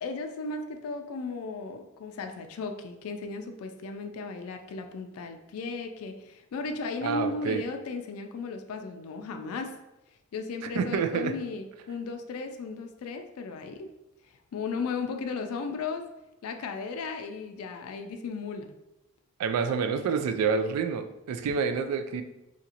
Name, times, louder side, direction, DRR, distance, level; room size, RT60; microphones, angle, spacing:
voice 1, 0.0-9.7 10.3-13.9 14.3-16.1 16.4-18.7, left 4 dB, 75° left, 6 dB, 0.3 m, -35 dB
voice 2, 7.0-7.6 10.8-11.3 19.4-22.2, right 5 dB, 90° right, 13 dB, 0.3 m, -28 dB
2.8 x 2.4 x 2.8 m, 0.96 s
head